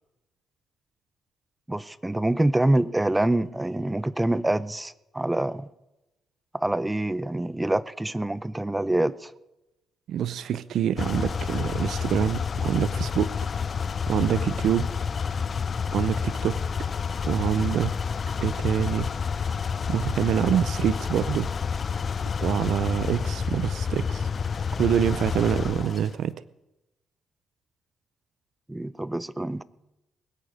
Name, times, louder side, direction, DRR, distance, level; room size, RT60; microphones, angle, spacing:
voice 1, 1.7-5.7 6.5-9.3 28.7-29.6, right 1 dB, 10° right, 18 dB, 0.6 m, -26 dB
voice 2, 10.1-13.3 14.1-14.9 15.9-16.9 17.2-17.9 18.4-19.1 19.5-19.6 19.9-21.5 22.4-24.3 24.7-26.3, right 9 dB, 70° right, 16 dB, 0.5 m, -26 dB
sound 1, 11.0-26.1, left 6 dB, 45° left, 0.4 m, -29 dB
20.5 x 8.9 x 5.1 m, 0.97 s
cardioid pair, 90°, 0 cm